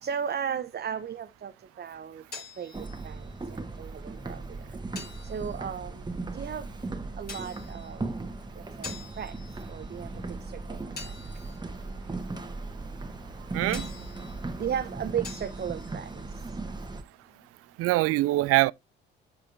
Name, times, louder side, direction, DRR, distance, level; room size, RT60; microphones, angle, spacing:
voice 1, 0.0-1.5 1.8-2.2 2.6-3.2 3.5-4.4 5.3-5.9 6.3-6.7 7.2-8.0 8.8-8.9 9.2-9.3 9.7-10.1 10.7-10.8 14.6-16.1, right 8 dB, 35° right, 0.9 m, -34 dB
sound 1, 1.9-17.4, left 4 dB, 35° left, 2.9 m, -49 dB
sound 2, 2.7-17.0, right 3 dB, 15° right, 1.5 m, -38 dB
voice 2, 13.5-13.9 17.8-18.7, right 18 dB, 50° right, 0.4 m, -23 dB
14.0 x 4.8 x 2.6 m
figure-of-eight pair, 50°, 29 cm